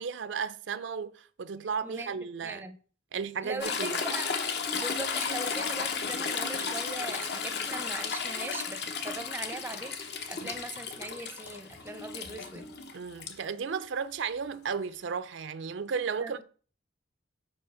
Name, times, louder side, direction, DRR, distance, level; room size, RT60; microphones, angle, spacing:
voice 1, 0.0-2.7 3.1-4.0 12.9-16.4, right 6 dB, 70° right, 0.4 m, -34 dB
voice 2, 1.8-2.1 2.4-2.8 3.4-4.3 4.7-12.6 16.2-16.3, right 2 dB, 10° right, 0.5 m, -40 dB
Toilet flush / Trickle dribble, 3.6-13.3 15.1-15.2, left 5 dB, 55° left, 0.8 m, -34 dB
4.9 x 4.7 x 6.1 m
head